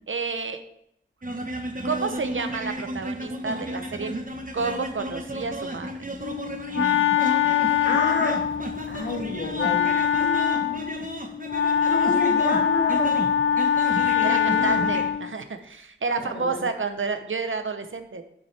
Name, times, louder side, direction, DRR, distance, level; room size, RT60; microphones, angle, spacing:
voice 1, 0.1-0.6 1.8-4.1 4.5-5.9 9.7-10.0 14.2-18.2, right 4 dB, 75° right, 8 dB, 0.9 m, -30 dB
sound 1, 1.2-15.1, right 1 dB, 40° right, 1.2 m, -34 dB
Wind instrument woodwind instrument, 6.2-15.3, left 8 dB, 85° left, 0.5 m, -23 dB
voice 2, 7.8-8.4 8.9-9.8 10.1-10.8 11.9-13.2 14.2-14.9 16.4-16.6, left 2 dB, 60° left, 1 dB, 1.8 m, -30 dB
8.6 x 7.1 x 3.4 m, 0.74 s
wide cardioid pair, 45°, 20 cm